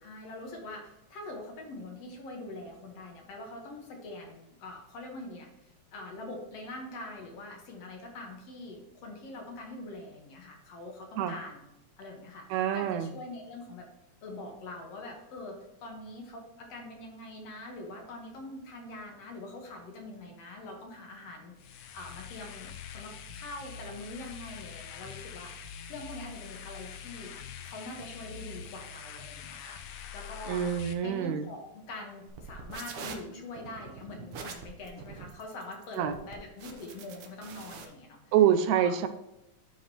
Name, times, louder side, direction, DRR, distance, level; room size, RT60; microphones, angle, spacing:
voice 1, 0.0-5.5 5.9-11.7 12.0-13.9 14.2-27.3 27.6-29.8 30.1-30.7 31.0-38.3 38.7-38.9, left 2 dB, 60° left, 1 dB, 2.3 m, -44 dB
voice 2, 12.5-13.2 30.5-31.4 36.0-36.1 38.3-39.1, right 9 dB, 80° right, 9 dB, 1.8 m, -26 dB
sound 1, 21.6-30.9, left 7 dB, 80° left, 1.9 m, -44 dB
sound 2, 32.3-37.8, right 4 dB, 60° right, 1.6 m, -44 dB
11.5 x 5.0 x 3.0 m, 0.91 s
omnidirectional pair, 3.3 m